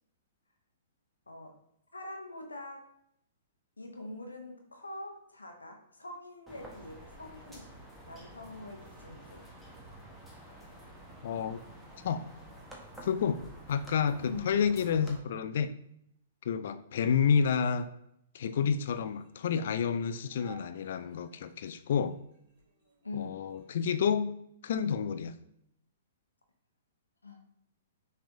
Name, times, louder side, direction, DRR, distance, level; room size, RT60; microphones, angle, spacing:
voice 1, 1.9-2.9 3.8-7.7 8.1-9.5 14.2-14.5 23.0-23.4 27.2-27.5, left 2 dB, 80° left, 3 dB, 0.8 m, -44 dB
sound 1, 6.5-15.2, right 1 dB, 5° right, 1.0 m, -50 dB
voice 2, 11.2-11.6 12.0-12.3 13.0-13.4 13.7-15.7 16.5-17.9 18.3-22.1 23.1-24.3 24.6-25.4, left 7 dB, 55° left, 11 dB, 0.3 m, -29 dB
sound 2, 19.0-24.1, right 4 dB, 50° right, 1.8 m, -59 dB
5.9 x 3.3 x 2.7 m, 0.75 s
figure-of-eight pair, 115°, 0 cm